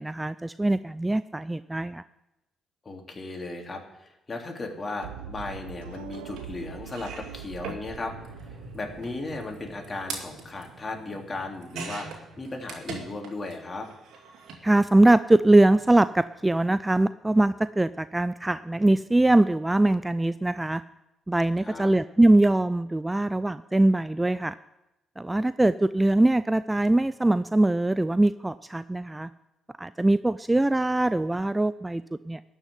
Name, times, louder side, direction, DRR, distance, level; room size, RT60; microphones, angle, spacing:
voice 1, 0.0-2.0 14.6-20.8 21.3-24.5 25.2-29.3 29.8-32.4, right 2 dB, 15° right, 15 dB, 0.4 m, -22 dB
voice 2, 2.8-8.1 8.7-12.1 12.4-13.9 21.6-21.9, left 2 dB, 35° left, 2 dB, 3.5 m, -36 dB
sound 1, 5.0-11.0, right 8 dB, 80° right, 0.8 m, -43 dB
sound 2, 6.4-6.5 6.8-13.5 13.8-14.6 15.6-15.8 16.1-16.2, right 4 dB, 65° right, 2.6 m, -42 dB
13.0 x 6.4 x 9.7 m, 0.93 s
hypercardioid pair, 45°, 0 cm